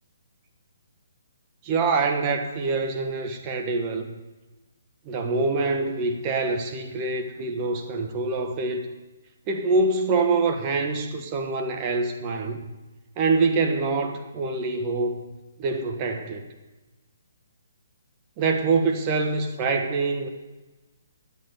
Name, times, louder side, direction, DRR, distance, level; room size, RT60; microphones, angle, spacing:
voice 1, 1.6-4.1 5.0-8.9 9.5-12.6 13.2-15.2 15.6-16.5 18.4-20.3, right 3 dB, 30° right, 5 dB, 1.2 m, -25 dB
11.0 x 8.3 x 6.6 m, 1.2 s
figure-of-eight pair, 140°, 0 cm